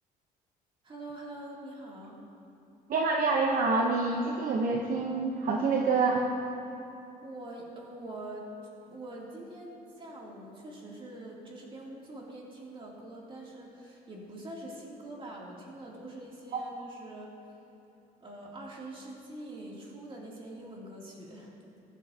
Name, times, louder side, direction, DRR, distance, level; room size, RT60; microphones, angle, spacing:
voice 1, 0.8-2.2 7.2-8.5 8.9-17.3 18.2-21.5, right 1 dB, 30° right, -3 dB, 2.7 m, -44 dB
voice 2, 2.9-6.3 16.5-16.6, right 3 dB, 55° right, 1 dB, 0.9 m, -27 dB
15.5 x 11.5 x 2.8 m, 2.9 s
cardioid pair, 110°, 17 cm